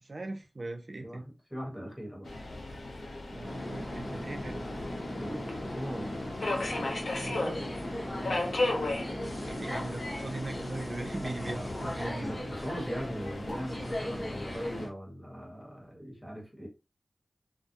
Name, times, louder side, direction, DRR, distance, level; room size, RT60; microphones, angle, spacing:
voice 1, 0.0-1.3 3.3-4.7 7.2-7.8 9.5-12.3 12.5-12.6, right 2 dB, 50° right, 0.3 m, -39 dB
voice 2, 1.5-2.3 5.2-6.4 8.1-8.4 12.2-16.7, equal, 10° left, 1.1 m, -40 dB
Subway metro underground, 2.2-14.9, left 2 dB, 80° left, 0.6 m, -37 dB
sound 1, 3.4-14.9, left 1 dB, 40° left, 0.8 m, -38 dB
2.3 x 2.0 x 2.8 m
wide cardioid pair, 65°, 0 cm